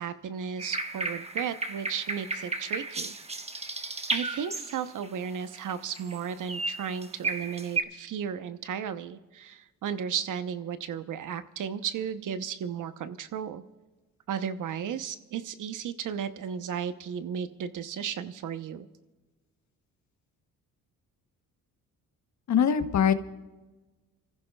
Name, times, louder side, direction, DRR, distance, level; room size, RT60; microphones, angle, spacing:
voice 1, 0.0-3.1 4.1-13.6 14.3-18.9, right 8 dB, 65° right, 11 dB, 1.0 m, -34 dB
sound 1, 0.6-5.1 5.5-6.2 6.5-7.8, right 3 dB, 20° right, 1.1 m, -33 dB
voice 2, 22.5-23.1, left 8 dB, 55° left, 9 dB, 1.2 m, -22 dB
29.0 x 15.0 x 2.4 m, 1.2 s
cardioid pair, 90°, 34 cm